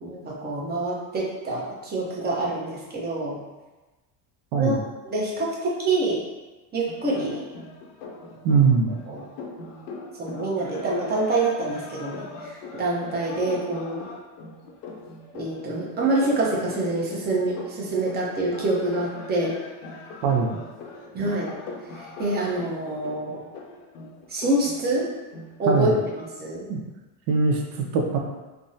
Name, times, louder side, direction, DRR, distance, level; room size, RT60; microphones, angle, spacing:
voice 1, 0.0-3.4 4.6-4.7 5.0-6.2 6.7-7.4 9.1-9.2 10.2-14.0 15.3-19.6 21.1-21.5 21.9-23.4 24.3-25.1 25.6-26.7, right 2 dB, 20° right, -4 dB, 0.7 m, -26 dB
sound 1, 6.9-26.2, left 3 dB, 80° left, 0.7 m, -41 dB
voice 2, 8.4-8.9 20.2-20.5 25.7-25.9 26.7-26.8 27.3-28.2, right 4 dB, 65° right, 1 dB, 0.7 m, -21 dB
3.4 x 2.1 x 2.6 m, 1.2 s
supercardioid pair, 120°, 46 cm